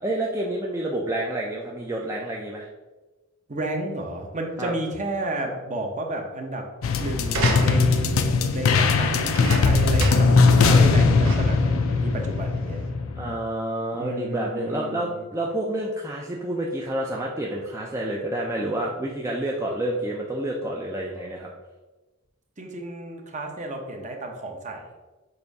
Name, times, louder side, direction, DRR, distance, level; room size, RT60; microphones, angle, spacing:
voice 1, 0.0-2.7 4.6-4.7 10.5-10.8 13.2-21.5, right 1 dB, 15° right, -2 dB, 0.5 m, -29 dB
voice 2, 3.5-6.6 7.0-12.8 13.9-15.1 22.6-24.9, right 1 dB, 35° right, 2 dB, 0.9 m, -32 dB
sound 1, 6.8-13.3, left 4 dB, 75° left, 0.5 m, -20 dB
sound 2, 7.3-8.1 9.1-10.4 10.8-10.9 11.2-11.7 12.4-12.5, right 3 dB, 70° right, 1.1 m, -31 dB
6.8 x 2.6 x 5.3 m, 1.2 s
head